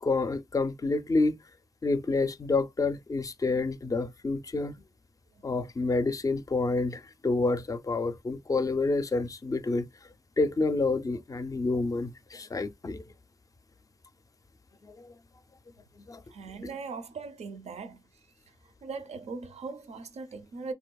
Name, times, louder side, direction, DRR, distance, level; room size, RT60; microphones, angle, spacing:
voice 1, 0.0-1.4 1.8-4.7 5.4-9.9 10.4-13.0 15.0-15.1 16.1-16.2 16.6-16.7, left 3 dB, 30° left, 0.4 m, -28 dB
voice 2, 16.3-18.0 18.8-20.7, right 4 dB, 70° right, 0.6 m, -39 dB
3.3 x 2.7 x 2.2 m
cardioid pair, 70°, 12 cm